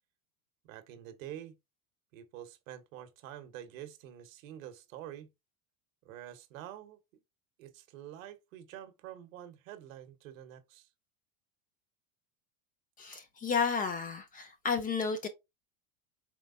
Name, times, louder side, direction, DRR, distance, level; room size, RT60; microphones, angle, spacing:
voice 1, 0.6-1.6 2.1-5.3 6.0-7.0 7.6-10.9, right 11 dB, 70° right, 1.0 m, -47 dB
voice 2, 13.0-15.3, left 5 dB, 20° left, 0.4 m, -32 dB
4.5 x 3.2 x 2.5 m
supercardioid pair, 125°, 41 cm